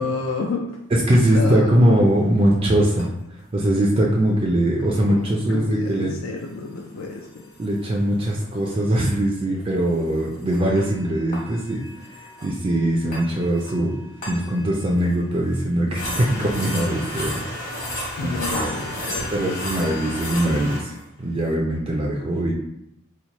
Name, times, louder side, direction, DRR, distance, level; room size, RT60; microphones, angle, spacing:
voice 1, 0.0-0.8 1.1-1.9 5.1-5.2 5.5-7.4 18.2-19.4, left 4 dB, 70° left, 1 dB, 0.4 m, -30 dB
voice 2, 0.9-3.1 3.5-6.1 7.6-11.8 12.4-14.0 14.3-17.4 18.2-18.4 19.3-22.5, right 1 dB, 30° right, -2 dB, 0.4 m, -21 dB
sound 1, 2.2-2.3 3.0-3.1 4.8-4.9 6.8-8.0 8.3-8.4 8.7-8.8 9.1-9.2 10.0-15.1 15.5-15.6 16.0-21.0, left 1 dB, 40° left, 1.0 m, -33 dB
3.0 x 2.1 x 4.0 m, 0.83 s
head